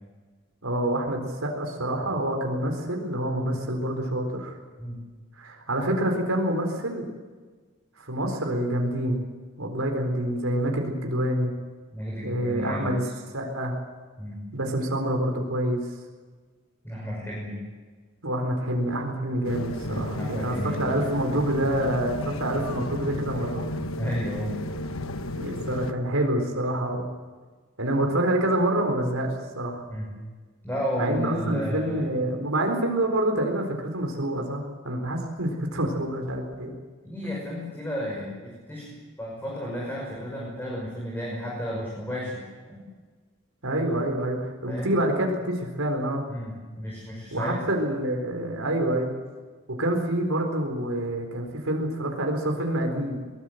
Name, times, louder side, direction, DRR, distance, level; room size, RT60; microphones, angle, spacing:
voice 1, 0.6-4.6 5.3-7.1 8.0-9.3 9.6-11.5 12.2-13.1 13.3-13.7 14.5-15.8 18.2-23.7 25.4-27.2 27.8-29.8 31.0-36.7 43.6-46.2 47.3-49.1 49.7-53.3, right 1 dB, 85° right, 2 dB, 4.2 m, -27 dB
voice 2, 11.9-12.9 14.2-14.4 16.8-17.6 19.9-20.9 24.0-24.5 29.9-30.1 30.6-32.0 37.0-42.4 42.7-42.8 44.7-45.0 46.3-47.6, equal, 10° left, -4 dB, 6.0 m, -33 dB
sound 1, 19.4-25.9, left 1 dB, 80° left, 1.2 m, -33 dB
23.0 x 19.5 x 8.0 m, 1.4 s
head